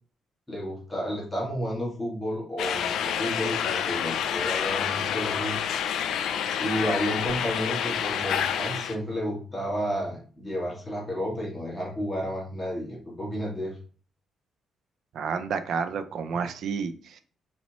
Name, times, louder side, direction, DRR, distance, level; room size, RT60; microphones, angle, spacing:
voice 1, 0.5-5.5 6.6-13.8, equal, 10° left, -5 dB, 2.0 m, -31 dB
sound 1, 2.6-8.9, left 8 dB, 80° left, 0.4 m, -28 dB
voice 2, 15.1-17.2, right 6 dB, 70° right, 11 dB, 0.5 m, -30 dB
4.2 x 4.2 x 3.0 m, 0.43 s
cardioid pair, 90°, 0 cm